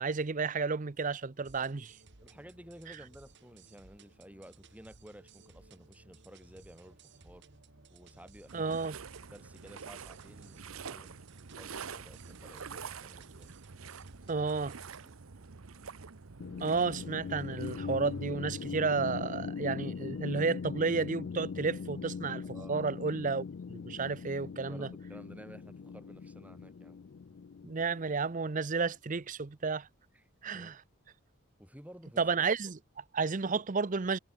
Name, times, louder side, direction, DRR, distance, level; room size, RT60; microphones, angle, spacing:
voice 1, 0.0-2.0 8.5-9.0 14.3-14.7 16.6-24.9 27.6-29.9 30.4-30.8 32.2-34.2, right 4 dB, 40° right, 0.6 m, -32 dB
sound 1, 1.4-15.1, right 3 dB, 55° right, 2.0 m, -58 dB
voice 2, 2.2-7.4 7.9-8.8 9.3-11.2 11.6-13.5 14.3-14.5 15.0-15.1 22.5-22.9 24.7-27.0 30.1-30.2 30.5-30.8 31.6-32.2, equal, 5° right, 6.7 m, -53 dB
sound 2, 8.5-18.4, right 6 dB, 75° right, 0.9 m, -47 dB
sound 3, 16.4-28.5, left 5 dB, 55° left, 0.4 m, -41 dB
head